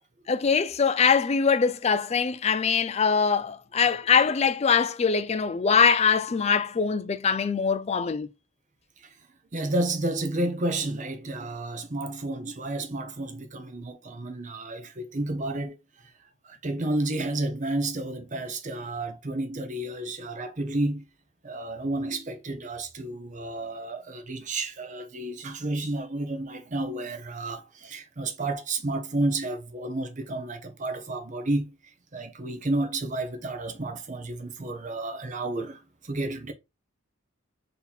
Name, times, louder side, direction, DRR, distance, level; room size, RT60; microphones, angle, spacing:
voice 1, 0.3-8.3, left 6 dB, 30° left, 0.3 m, -23 dB
voice 2, 9.5-15.8 16.4-21.0 21.4-31.7 32.1-36.5, right 2 dB, 35° right, 0.6 m, -31 dB
4.1 x 2.8 x 3.9 m
head